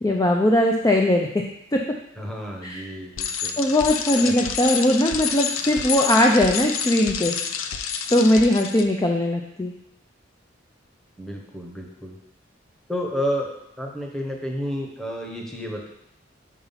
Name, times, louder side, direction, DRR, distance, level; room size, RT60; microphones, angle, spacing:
voice 1, 0.0-1.3 1.7-1.8 2.6-2.9 3.6-7.4 8.1-9.7, left 1 dB, 20° left, 1 dB, 0.4 m, -20 dB
voice 2, 2.2-3.5 4.2-4.3 11.2-12.2 12.9-15.9, equal, ahead, -1 dB, 1.0 m, -31 dB
Bicycle, 3.2-8.8, left 7 dB, 85° left, 0.5 m, -28 dB
5.6 x 4.8 x 5.6 m, 0.78 s
head